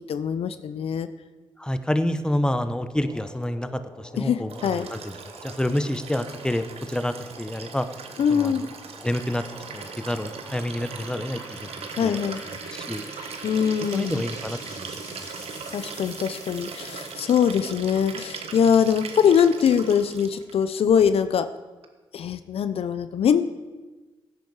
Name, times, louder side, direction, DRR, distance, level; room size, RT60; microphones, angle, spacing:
voice 1, 0.1-1.1 4.2-4.9 8.2-8.6 12.0-12.4 13.4-14.2 15.7-21.5 22.1-23.4, left 7 dB, 70° left, 12 dB, 0.6 m, -22 dB
voice 2, 1.6-5.1 5.4-7.9 8.3-8.7 9.0-9.4 9.7-12.2 12.7-13.1 13.9-15.5, left 1 dB, 10° left, 10 dB, 1.0 m, -28 dB
sound 1, 2.7-17.2, left 1 dB, 35° left, 4.1 m, -46 dB
Liquid, 4.5-20.5 21.8-21.9, right 5 dB, 75° right, 1.2 m, -39 dB
16.5 x 9.2 x 4.8 m, 1.2 s
cardioid pair, 60°, 10 cm